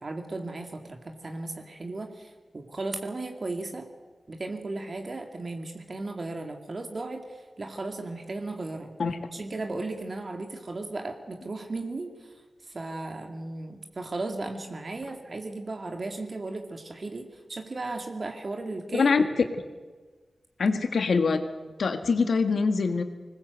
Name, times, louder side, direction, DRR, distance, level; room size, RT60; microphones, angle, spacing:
voice 1, 0.0-3.9 4.3-8.9 9.3-19.1, right 2 dB, 55° right, 4 dB, 2.3 m, -36 dB
voice 2, 18.9-19.2 20.6-21.4 21.8-23.0, left 4 dB, 80° left, 7 dB, 1.8 m, -23 dB
20.5 x 19.5 x 8.1 m, 1.4 s
cardioid pair, 45°, 0 cm